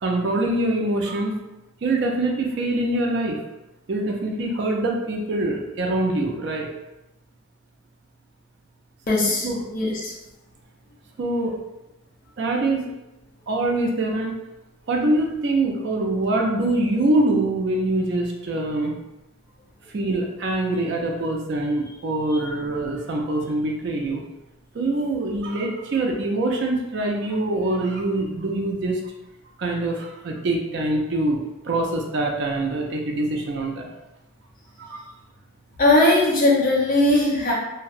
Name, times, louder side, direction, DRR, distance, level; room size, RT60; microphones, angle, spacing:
voice 1, 0.0-1.3 1.8-3.4 3.9-6.7 9.4-9.6 11.2-11.5 12.4-12.9 13.5-14.3 14.9-19.0 19.9-24.2 24.7-29.0 29.6-33.9 34.8-35.0, right 2 dB, 55° right, 1 dB, 0.4 m, -24 dB
voice 2, 9.1-10.1 35.8-37.5, left 2 dB, 40° left, -3 dB, 0.5 m, -19 dB
2.6 x 2.0 x 2.4 m, 0.96 s
head